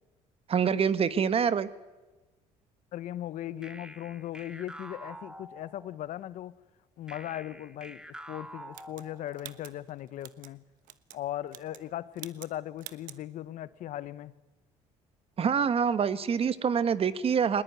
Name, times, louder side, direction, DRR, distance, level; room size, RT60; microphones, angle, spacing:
voice 1, 0.5-1.7 15.4-17.6, right 7 dB, 45° right, 1.3 m, -26 dB
voice 2, 2.9-6.6 7.0-8.0 8.3-10.6 11.1-14.4, left 13 dB, 65° left, 0.9 m, -38 dB
sound 1, 3.6-6.1 7.1-9.6, right 1 dB, 5° right, 1.5 m, -47 dB
sound 2, 8.7-10.5 10.9-11.2 11.5-11.9 12.2-12.5 12.8-13.2, right 14 dB, 70° right, 1.2 m, -47 dB
20.5 x 20.0 x 9.5 m
supercardioid pair, 80°, 14 cm